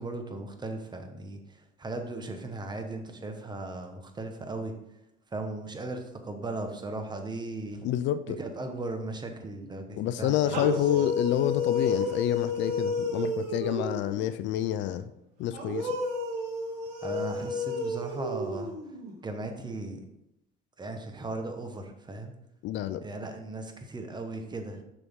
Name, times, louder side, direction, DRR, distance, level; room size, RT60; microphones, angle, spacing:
voice 1, 0.0-1.4 1.8-4.7 5.3-7.9 8.4-10.7 17.0-18.7 19.2-20.0 20.8-22.3 23.0-24.8, right 2 dB, 20° right, 5 dB, 1.1 m, -37 dB
voice 2, 7.8-8.4 10.0-15.1 15.4-16.0 22.6-23.0, left 11 dB, 60° left, 13 dB, 0.5 m, -28 dB
sound 1, 10.4-14.2 15.5-19.1, left 2 dB, 90° right, 2.3 m, -31 dB
6.7 x 6.1 x 3.6 m, 0.83 s
supercardioid pair, 105°, 21 cm